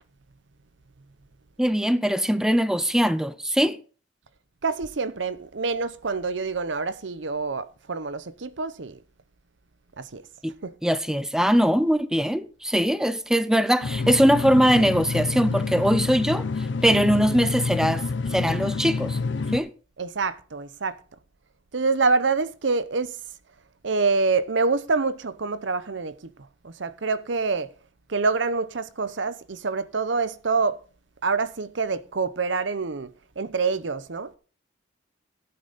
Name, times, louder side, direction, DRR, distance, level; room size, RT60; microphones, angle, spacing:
voice 1, 1.6-3.8 10.4-10.5 10.8-18.0 18.3-19.2 19.5-19.7, equal, 5° right, 0.6 m, -21 dB
voice 2, 4.6-9.0 10.0-10.2 10.6-10.7 20.0-21.0 21.7-23.2 23.8-26.3 26.6-27.7 28.1-30.8 31.2-33.1 33.4-34.3, right 4 dB, 75° right, 0.8 m, -26 dB
sound 1, 13.8-19.6, left 4 dB, 70° left, 0.7 m, -28 dB
13.0 x 8.7 x 4.1 m
head